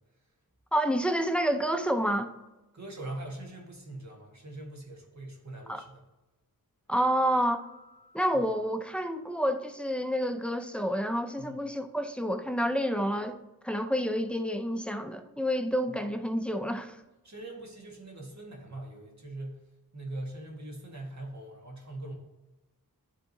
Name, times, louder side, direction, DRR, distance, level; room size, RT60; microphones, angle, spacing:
voice 1, 0.7-2.3 5.7-5.8 6.9-7.7 8.1-13.4 13.6-17.0, equal, 5° left, 0.5 m, -29 dB
voice 2, 2.7-6.1 8.3-8.4 11.4-11.6 17.2-19.6 19.9-22.2, right 1 dB, 50° right, 1.6 m, -42 dB
sound 1, 7.0-9.5, left 2 dB, 55° left, 1.4 m, -54 dB
10.5 x 3.7 x 2.7 m
wide cardioid pair, 65°, 35 cm